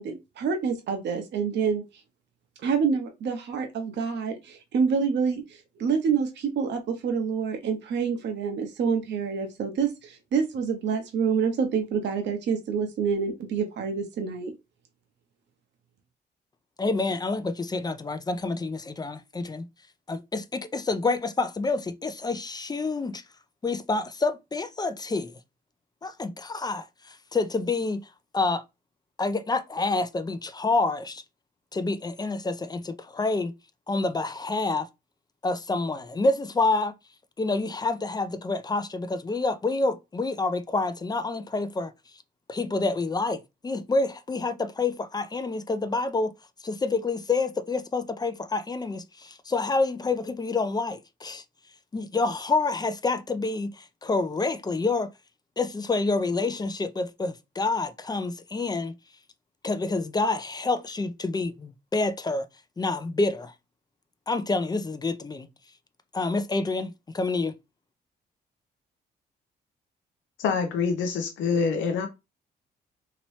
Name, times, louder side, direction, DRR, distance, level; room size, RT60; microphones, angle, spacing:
voice 1, 0.0-1.8 2.6-14.5, right 6 dB, 65° right, 0.7 m, -27 dB
voice 2, 16.8-19.7 20.1-23.2 23.6-25.4 26.0-28.0 28.3-28.6 29.2-31.2 31.7-33.5 33.9-34.9 35.4-36.9 37.4-41.9 42.5-46.3 46.6-51.4 51.9-55.1 55.6-59.0 59.6-62.5 62.8-63.5 64.3-65.5 66.1-67.5, left 3 dB, 20° left, 0.4 m, -28 dB
voice 3, 70.4-72.1, left 5 dB, 85° left, 0.7 m, -26 dB
2.9 x 2.8 x 3.1 m
supercardioid pair, 65°, 19 cm